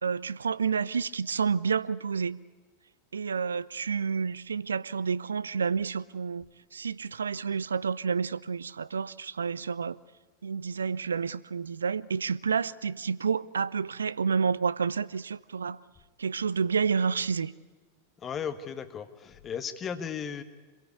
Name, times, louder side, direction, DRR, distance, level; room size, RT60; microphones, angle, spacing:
voice 1, 0.0-2.4 3.1-6.4 6.7-10.0 10.4-15.8 16.2-17.5, right 6 dB, 70° right, 19 dB, 0.6 m, -29 dB
voice 2, 18.2-20.4, left 7 dB, 25° left, 10 dB, 1.5 m, -35 dB
26.5 x 17.0 x 8.4 m, 1.4 s
figure-of-eight pair, 90°, 0 cm